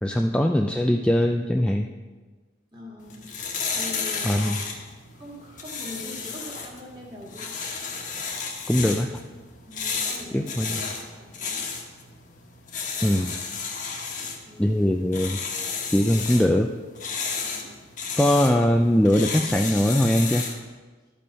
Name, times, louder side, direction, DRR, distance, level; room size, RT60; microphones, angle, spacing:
voice 1, 0.0-1.9 4.2-4.6 8.7-9.1 10.3-10.8 13.0-13.3 14.6-15.4 15.9-16.7 18.2-20.4, equal, 5° left, 3 dB, 0.3 m, -21 dB
voice 2, 2.7-3.2 3.7-4.5 5.1-7.5 9.6-11.6 14.4-14.8 17.4-17.7, left 1 dB, 25° right, -4 dB, 2.2 m, -42 dB
sound 1, 3.0-20.6, left 5 dB, 40° left, 1.3 m, -33 dB
12.5 x 5.3 x 5.6 m, 1.3 s
head